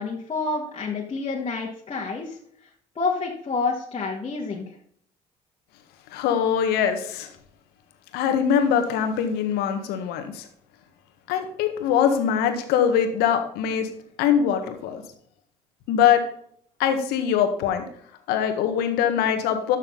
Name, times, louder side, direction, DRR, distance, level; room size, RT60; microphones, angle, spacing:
voice 1, 0.0-2.7 3.0-4.7, left 4 dB, 35° left, -3 dB, 2.1 m, -29 dB
voice 2, 6.1-7.3 8.1-10.5 11.3-13.9 14.2-15.0 15.9-16.2 16.8-17.8 18.3-19.8, left 8 dB, 70° left, 6 dB, 1.7 m, -22 dB
12.5 x 6.5 x 4.0 m, 0.64 s
hypercardioid pair, 55°, 17 cm